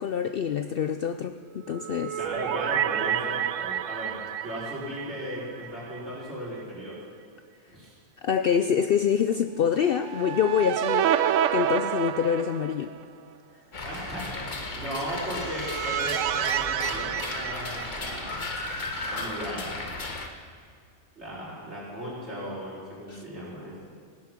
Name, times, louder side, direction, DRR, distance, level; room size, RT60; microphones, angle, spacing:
voice 1, 0.0-2.2 8.2-11.1 11.5-13.0 23.1-23.2, left 8 dB, 70° left, 9 dB, 0.5 m, -26 dB
sound 1, 1.7-6.0 6.3-6.4 9.9-13.0 15.1-18.5, right 10 dB, 70° right, 0.9 m, -29 dB
voice 2, 2.2-4.1 4.4-7.0 7.7-8.0 13.8-18.4 19.1-19.9 21.2-23.9, equal, 50° right, -8 dB, 5.4 m, -36 dB
sound 2, 13.7-20.3, left 2 dB, 40° left, 1.1 m, -35 dB
17.0 x 10.5 x 6.1 m, 2.1 s
omnidirectional pair, 1.4 m